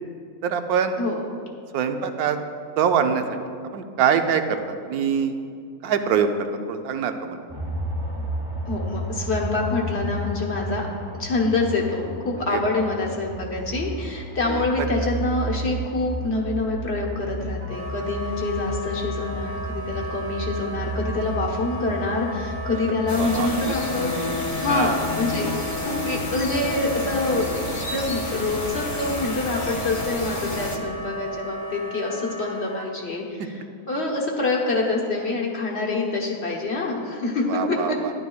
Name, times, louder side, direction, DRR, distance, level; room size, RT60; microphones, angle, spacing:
voice 1, 0.4-1.0 1.7-2.4 2.8-3.2 3.7-5.4 5.8-7.4 12.5-12.6 14.5-14.6 23.2-23.7 24.7-25.0 33.5-33.6 37.5-38.1, right 7 dB, 80° right, 7 dB, 1.1 m, -24 dB
voice 2, 1.0-1.3 8.6-10.9 11.2-24.2 24.6-25.5 25.8-27.5 27.9-33.5 33.9-38.0, left 3 dB, 50° left, -1 dB, 1.3 m, -26 dB
sound 1, 7.5-23.2, right 1 dB, 30° right, 1.6 m, -32 dB
Wind instrument woodwind instrument, 17.6-32.9, equal, 65° right, 1.5 m, -35 dB
sound 2, 23.1-30.8, left 2 dB, 30° left, 0.6 m, -30 dB
12.0 x 11.0 x 2.3 m, 2.2 s
omnidirectional pair, 1.6 m